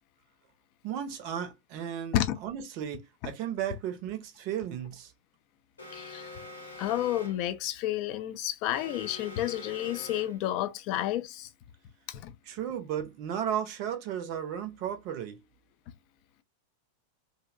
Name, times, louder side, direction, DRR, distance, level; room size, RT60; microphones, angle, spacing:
voice 1, 0.8-5.1 12.5-15.4, right 9 dB, 45° right, 0.5 m, -34 dB
Alarm, 5.8-7.5 8.7-10.5, left 2 dB, 75° left, 0.7 m, -45 dB
voice 2, 5.9-6.3 6.8-11.5 12.1-12.3, left 12 dB, 40° left, 0.4 m, -31 dB
2.6 x 2.0 x 2.4 m
figure-of-eight pair, 90°, 0 cm